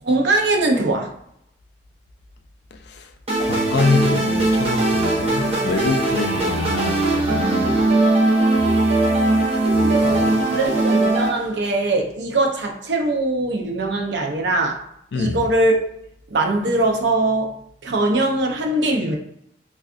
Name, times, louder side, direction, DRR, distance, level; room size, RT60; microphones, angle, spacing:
voice 1, 0.0-1.1 9.8-14.9 15.1-15.8 16.3-17.5 17.8-19.2, right 2 dB, 75° right, 0.6 m, -21 dB
sound 1, 3.3-11.3, right 2 dB, 35° right, 0.8 m, -19 dB
voice 2, 3.4-7.8 8.6-9.4 9.7-10.3 15.1-15.4, left 4 dB, 70° left, 0.4 m, -25 dB
3.5 x 2.3 x 2.4 m
head